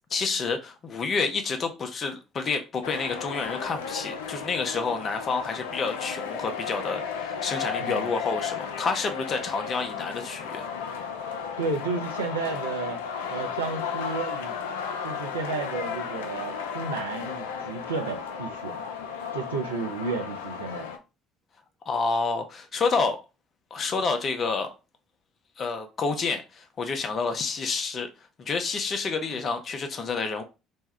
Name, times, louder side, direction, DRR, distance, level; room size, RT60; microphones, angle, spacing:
voice 1, 0.1-10.6 21.9-23.2 23.7-24.7 25.6-28.1 28.4-30.4, left 4 dB, 45° left, 0.7 m, -29 dB
sound 1, 2.8-21.0, left 6 dB, 80° left, 0.4 m, -34 dB
voice 2, 7.8-8.1 11.6-13.0 13.3-14.6 15.0-18.7 19.3-20.9 29.3-29.4, right 4 dB, 85° right, 0.6 m, -32 dB
2.6 x 2.3 x 3.3 m
hypercardioid pair, 55°, 0 cm